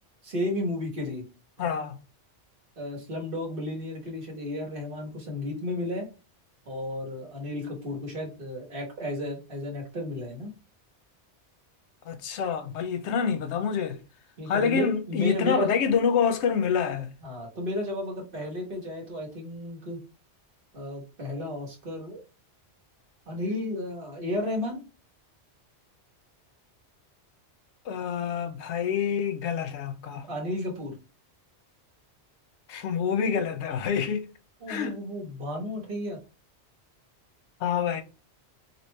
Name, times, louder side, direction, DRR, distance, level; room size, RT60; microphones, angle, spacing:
voice 1, 0.2-1.2 1.6-1.9 2.8-6.1 6.6-10.5 14.4-15.7 17.2-20.0 20.7-22.2 23.3-24.8 30.3-31.0 34.6-36.2, left 1 dB, 50° right, 1.3 m, -33 dB
voice 2, 1.6-2.0 12.1-14.0 14.5-17.1 27.9-30.2 32.7-34.3 34.7-34.9 37.6-38.0, left 6 dB, 80° left, 0.9 m, -27 dB
3.0 x 2.8 x 3.1 m
omnidirectional pair, 1.2 m